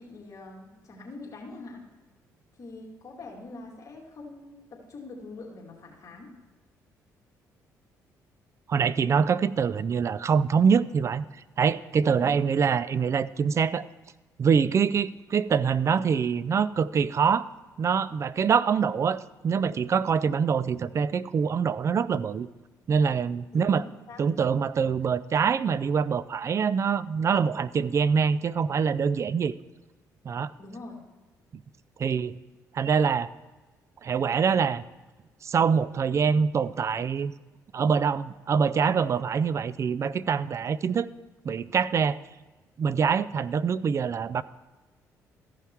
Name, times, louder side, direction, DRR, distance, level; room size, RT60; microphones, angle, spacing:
voice 1, 0.0-1.8 2.6-6.3 12.1-12.4 23.5-23.8 24.1-24.2 30.6-31.0, left 3 dB, 50° left, -1 dB, 2.3 m, -43 dB
voice 2, 8.7-11.2 11.6-13.8 14.4-17.5 17.8-22.5 22.9-23.8 24.2-29.5 30.2-30.5 31.5-31.6 32.0-32.4 32.7-33.3 34.0-34.8 35.4-37.3 37.7-41.1 41.4-42.2 42.8-44.4, right 6 dB, 45° right, 17 dB, 0.4 m, -24 dB
14.5 x 5.7 x 4.6 m, 1.2 s
supercardioid pair, 75°, 7 cm